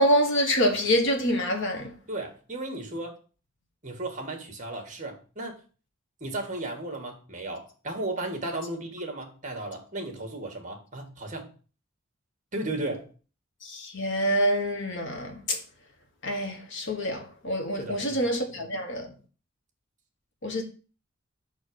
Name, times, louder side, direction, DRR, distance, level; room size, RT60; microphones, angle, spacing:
voice 1, 0.0-1.9 13.6-15.6 16.2-19.1 20.4-20.6, equal, 65° left, 1.5 m, -26 dB
voice 2, 2.1-3.2 3.8-5.6 6.2-11.5 12.5-13.1 17.8-18.2, right 2 dB, 40° right, 1.7 m, -35 dB
5.9 x 4.3 x 6.2 m
head